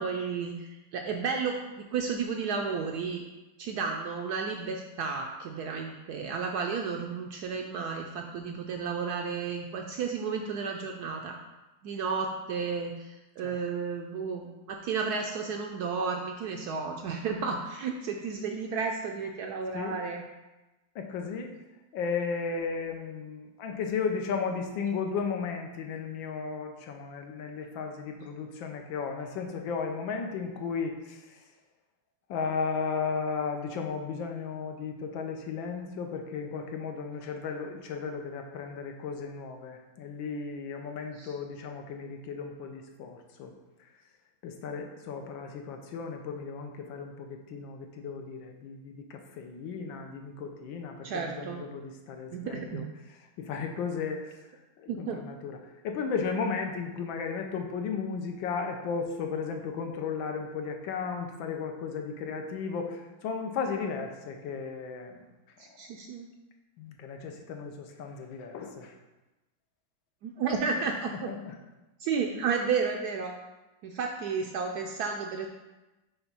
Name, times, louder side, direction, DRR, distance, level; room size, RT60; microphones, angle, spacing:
voice 1, 0.0-3.2 3.6-11.4 11.8-20.2 41.1-41.3 51.0-51.6 52.3-52.9 54.9-55.2 65.6-66.3 70.2-71.3 72.0-73.3 73.8-75.5, right 5 dB, 75° right, 3 dB, 0.9 m, -32 dB
voice 2, 20.9-21.5 21.9-31.2 32.3-43.5 44.4-52.8 53.4-54.3 54.8-55.6 55.8-65.2 66.8-68.9 71.3-71.5, left 5 dB, 80° left, 4 dB, 1.5 m, -35 dB
5.9 x 3.5 x 5.5 m, 1.1 s
omnidirectional pair, 2.1 m